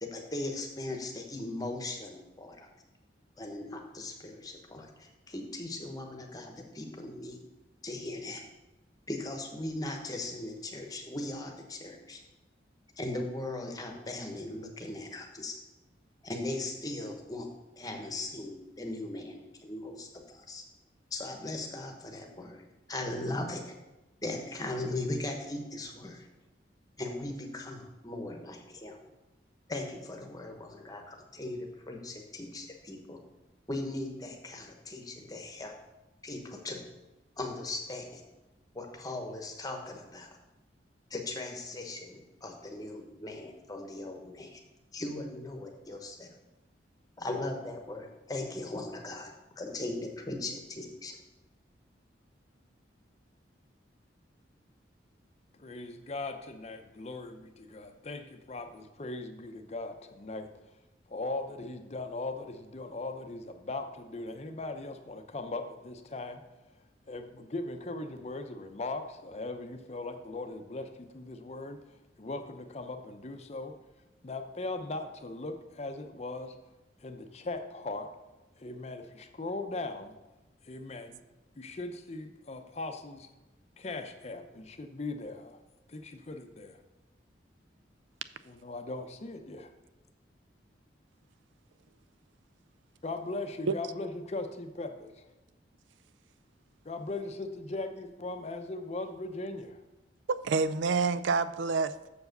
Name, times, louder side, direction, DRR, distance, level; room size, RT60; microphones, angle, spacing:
voice 1, 0.0-2.7 3.4-7.4 7.8-8.5 9.1-12.2 13.0-15.6 16.2-17.5 17.8-20.6 21.1-23.7 24.2-26.3 27.0-29.0 29.7-33.2 33.7-35.7 36.2-36.8 37.4-38.2 38.7-40.4 41.1-44.6 44.9-46.3 47.2-51.2, left 2 dB, 20° left, 3 dB, 1.0 m, -38 dB
voice 2, 55.6-60.5 61.1-66.4 67.1-71.8 72.2-73.7 74.2-76.5 77.0-78.1 78.6-80.1 80.6-81.2 81.6-83.3 83.8-85.6 85.9-86.8 88.4-89.7 93.0-95.3 96.8-99.8, left 2 dB, 35° left, 7 dB, 0.6 m, -39 dB
voice 3, 100.3-102.1, right 4 dB, 85° right, 14 dB, 0.4 m, -28 dB
6.8 x 4.7 x 6.6 m, 1.0 s
head